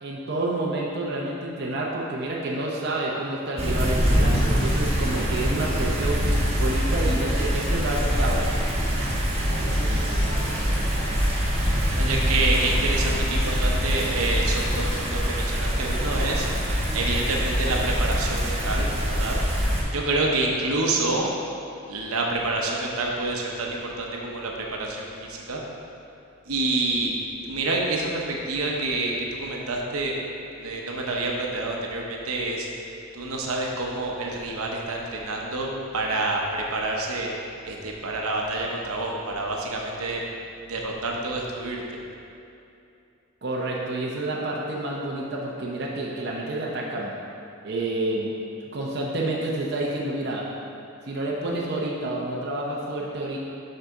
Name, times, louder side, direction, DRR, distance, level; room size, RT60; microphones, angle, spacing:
voice 1, 0.0-6.2 6.5-8.4 43.4-47.1 47.6-48.3 48.7-50.4 51.1-53.4, right 2 dB, 50° right, -4 dB, 0.6 m, -29 dB
sound 1, 3.6-19.8, equal, 30° right, 1.0 m, -24 dB
voice 2, 12.0-16.5 16.9-19.4 19.9-21.3 21.9-25.6 26.4-27.1 27.4-30.1 30.6-32.7 33.1-37.3 37.6-40.2 40.7-42.0, right 2 dB, 80° right, -1 dB, 0.8 m, -28 dB
6.5 x 5.6 x 3.6 m, 2.7 s
head